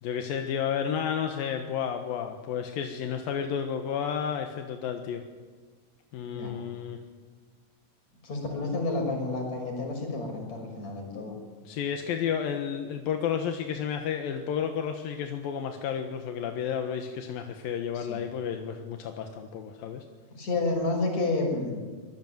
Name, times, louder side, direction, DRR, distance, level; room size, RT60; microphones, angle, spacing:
voice 1, 0.0-5.2 6.1-7.0 11.6-20.0, left 8 dB, 85° left, 5 dB, 3.2 m, -31 dB
voice 2, 8.2-11.4 17.9-18.2 20.3-21.8, left 3 dB, 50° left, 2 dB, 7.3 m, -30 dB
25.0 x 21.5 x 9.3 m, 1.4 s
omnidirectional pair, 4.0 m